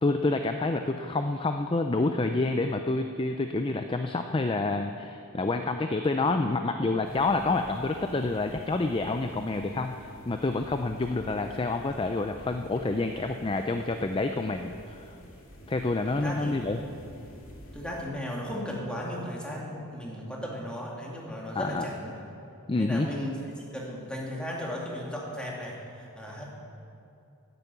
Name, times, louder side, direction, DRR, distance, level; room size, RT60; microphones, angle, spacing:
voice 1, 0.0-15.1 15.7-16.8 21.6-21.9 22.7-23.1, left 3 dB, 25° left, 6 dB, 0.4 m, -28 dB
sound 1, 7.0-18.0, equal, 65° left, 2.2 m, -50 dB
voice 2, 16.1-16.6 17.7-22.2 22.8-23.4 23.7-26.4, equal, 5° left, -3 dB, 2.2 m, -36 dB
11.0 x 10.0 x 8.3 m, 2.6 s
head